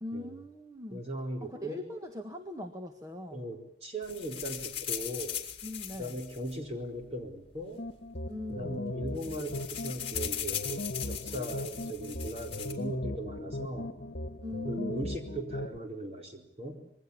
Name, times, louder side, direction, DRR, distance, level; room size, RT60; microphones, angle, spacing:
voice 1, 0.0-1.0 1.4-3.5 5.6-6.2 8.3-8.8 14.4-15.1, left 1 dB, 20° right, 5 dB, 1.6 m, -40 dB
voice 2, 0.9-1.8 3.3-5.4 6.0-7.8 8.5-14.0 14.7-16.9, right 1 dB, 35° right, 3 dB, 4.3 m, -38 dB
sound 1, 4.0-7.3 8.1-8.2 8.4-8.6 8.9-12.7, left 10 dB, 30° left, 3.3 m, -39 dB
sound 2, 7.8-15.8, left 1 dB, 60° left, 1.6 m, -38 dB
26.5 x 21.5 x 8.6 m, 0.67 s
head